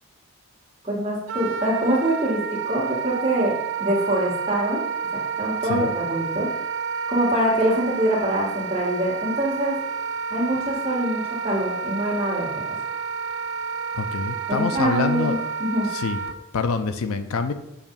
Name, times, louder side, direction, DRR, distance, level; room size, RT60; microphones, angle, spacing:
voice 1, 0.8-4.8 5.1-6.5 7.1-9.8 10.3-12.5 14.5-15.9, right 1 dB, 25° right, -5 dB, 1.8 m, -24 dB
Wind instrument woodwind instrument, 1.3-16.4, right 6 dB, 55° right, 0.4 m, -30 dB
voice 2, 13.9-15.5 15.9-16.2 16.5-17.5, left 4 dB, 70° left, 9 dB, 0.5 m, -26 dB
7.0 x 2.7 x 5.4 m, 0.83 s
head